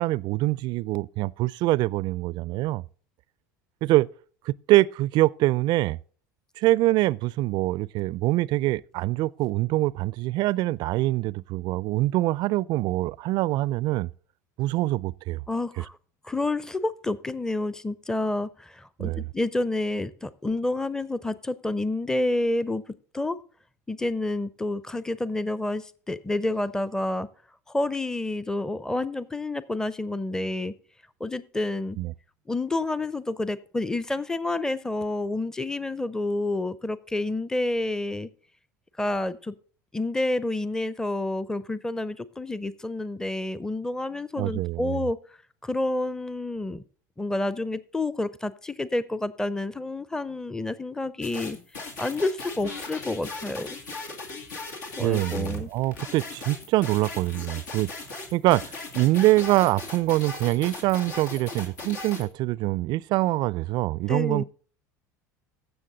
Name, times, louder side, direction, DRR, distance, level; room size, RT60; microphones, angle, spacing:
voice 1, 0.0-2.8 3.8-4.1 4.5-6.0 6.6-14.1 14.6-15.4 19.0-19.3 32.0-32.1 44.4-45.0 55.0-57.9 58.3-58.6 58.9-64.4, right 18 dB, 55° right, 0.4 m, -24 dB
voice 2, 15.5-15.9 16.2-22.8 23.1-23.4 23.9-27.3 27.7-30.7 31.2-32.0 32.5-38.3 39.0-39.6 39.9-45.2 45.6-46.8 47.2-51.6 52.0-53.8 55.0-55.7 64.1-64.4, left 2 dB, 5° left, 0.6 m, -29 dB
sound 1, 51.2-62.3, left 3 dB, 80° left, 2.3 m, -38 dB
15.0 x 6.4 x 3.9 m
hypercardioid pair, 80°, 9 cm